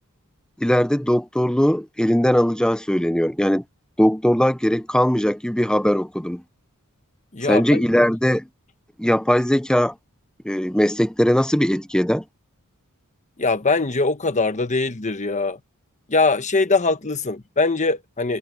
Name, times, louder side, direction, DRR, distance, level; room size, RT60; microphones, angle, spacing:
voice 1, 0.6-3.6 4.0-6.4 7.5-8.5 9.0-9.9 10.4-12.2, equal, 5° left, 0.7 m, -19 dB
voice 2, 7.3-7.8 13.4-15.6 16.1-18.4, left 3 dB, 35° left, 1.2 m, -22 dB
head